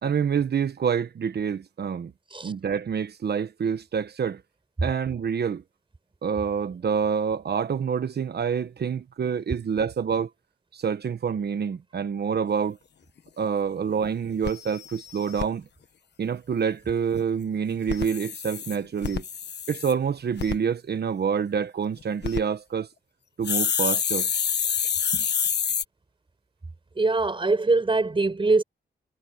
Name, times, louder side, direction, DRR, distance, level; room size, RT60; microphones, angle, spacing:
voice 1, 0.0-2.1 2.4-4.4 4.8-5.6 6.2-10.3 10.7-12.8 13.4-15.6 16.2-19.2 19.7-22.9 23.4-24.3 25.1-25.2, right 7 dB, 65° right, 1.2 m, -27 dB
sound 1, 13.3-13.4 13.8-13.9 14.1-14.2 14.4-15.5 17.7-19.9 20.4-20.6 22.0-22.4 23.4-25.8, left 7 dB, 70° left, 1.3 m, -27 dB
voice 2, 27.0-28.6, right 3 dB, 30° right, 6.3 m, -22 dB
wide cardioid pair, 115°, 18 cm